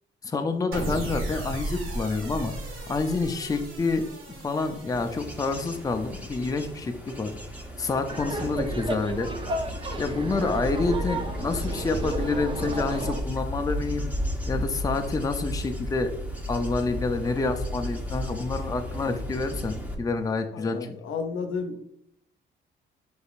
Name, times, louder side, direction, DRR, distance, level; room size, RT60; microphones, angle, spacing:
voice 1, 0.2-2.6 2.9-4.0 4.4-7.3 7.8-9.3 10.0-14.1 14.5-16.1 16.5-20.8, left 3 dB, 20° left, 6 dB, 0.5 m, -28 dB
sound 1, 0.7-7.1, right 2 dB, 90° right, 1.6 m, -36 dB
Bird / Insect / Wind, 4.9-19.9, left 1 dB, 10° right, 0.9 m, -34 dB
Laughter, 8.1-13.2, right 2 dB, 25° right, 0.6 m, -32 dB
voice 2, 20.5-21.8, left 5 dB, 85° left, 5 dB, 0.8 m, -32 dB
5.1 x 4.3 x 2.4 m, 0.72 s
cardioid pair, 90°, 20 cm